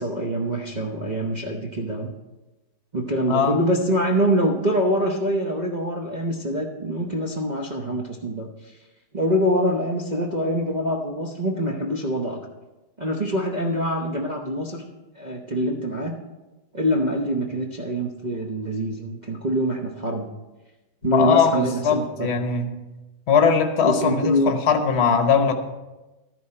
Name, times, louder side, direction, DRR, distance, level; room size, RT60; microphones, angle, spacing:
voice 1, 0.0-2.1 2.9-8.5 9.1-12.4 13.0-14.9 15.2-16.2 16.7-20.3 21.0-22.4 23.8-24.5, equal, 55° right, -1 dB, 0.5 m, -25 dB
voice 2, 3.3-3.6 21.1-22.7 23.3-25.5, left 6 dB, 40° left, 6 dB, 1.0 m, -20 dB
13.5 x 10.5 x 4.3 m, 1.1 s
omnidirectional pair, 2.2 m